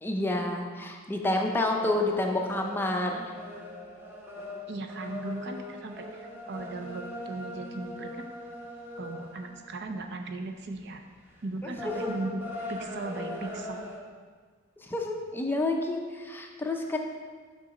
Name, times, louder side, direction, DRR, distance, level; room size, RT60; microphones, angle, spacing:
voice 1, 0.0-3.3 14.8-17.0, left 2 dB, 10° left, 1 dB, 0.4 m, -29 dB
sound 1, 1.8-10.0 10.5-10.8 11.2-14.0, left 1 dB, 10° right, 0.9 m, -41 dB
voice 2, 4.7-8.2 9.0-11.0 11.4-12.4 12.7-13.8, right 2 dB, 55° right, 5 dB, 0.5 m, -37 dB
6.7 x 3.8 x 5.1 m, 1.6 s
head